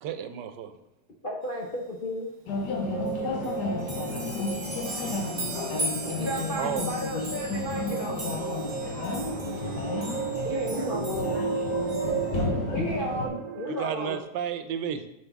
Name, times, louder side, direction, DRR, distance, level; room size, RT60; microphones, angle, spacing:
voice 1, 0.0-0.7 6.0-6.9 13.7-15.0, right 8 dB, 85° right, 9 dB, 1.3 m, -33 dB
voice 2, 1.2-2.3 6.2-8.2 10.4-11.3 12.7-14.2, left 1 dB, 45° left, -1 dB, 0.7 m, -33 dB
sound 1, 2.5-13.3, left 3 dB, 75° left, 1.7 m, -32 dB
sound 2, 2.7-14.2, right 6 dB, 65° right, 1.0 m, -35 dB
voice 3, 2.9-4.4 10.3-11.6, right 1 dB, 10° right, -2 dB, 1.7 m, -47 dB
sound 3, 3.1-3.2 3.4-12.4, right 2 dB, 35° right, 1.4 m, -39 dB
7.6 x 6.1 x 3.5 m, 0.89 s
omnidirectional pair, 1.8 m